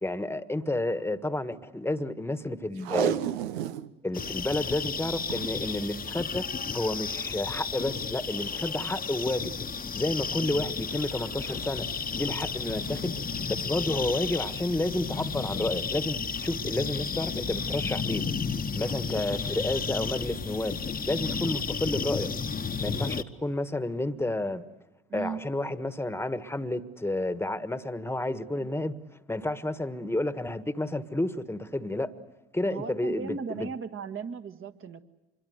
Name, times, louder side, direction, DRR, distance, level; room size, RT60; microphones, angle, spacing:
voice 1, 0.0-3.2 4.0-6.5 6.7-9.6 10.0-11.9 12.2-13.2 13.5-18.2 18.7-20.8 21.1-22.3 22.8-24.6 25.1-28.9 29.3-32.1 32.5-33.7, left 1 dB, 10° left, 12 dB, 1.5 m, -30 dB
Packing tape duct tape, 2.8-3.9 4.3-4.4 4.5-4.6 5.2-5.5 6.5-6.8 7.3-7.4, right 10 dB, 85° right, 0.8 m, -30 dB
sound 1, 4.1-23.2, left 5 dB, 30° left, 1.2 m, -32 dB
voice 2, 25.1-25.4 28.6-28.7 32.7-35.0, right 5 dB, 45° right, 7 dB, 1.7 m, -36 dB
26.0 x 22.5 x 8.0 m, 1.0 s
hypercardioid pair, 55°, 31 cm